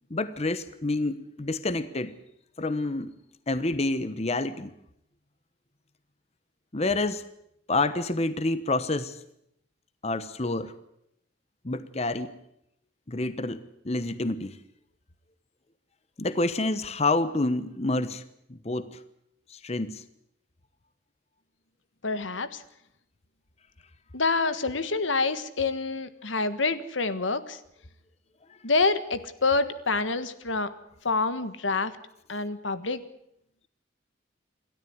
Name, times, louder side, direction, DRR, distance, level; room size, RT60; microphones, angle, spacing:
voice 1, 0.1-2.1 2.6-3.1 3.5-4.7 6.7-7.2 7.7-9.2 10.0-10.7 11.6-12.3 13.1-14.6 16.2-18.2 18.5-19.0 19.5-20.0, left 2 dB, 35° left, 13 dB, 1.0 m, -28 dB
voice 2, 22.0-22.6 24.1-27.6 28.6-30.7 31.0-31.9 32.3-33.0, left 3 dB, 85° left, 12 dB, 1.6 m, -27 dB
28.0 x 13.0 x 9.5 m, 0.78 s
head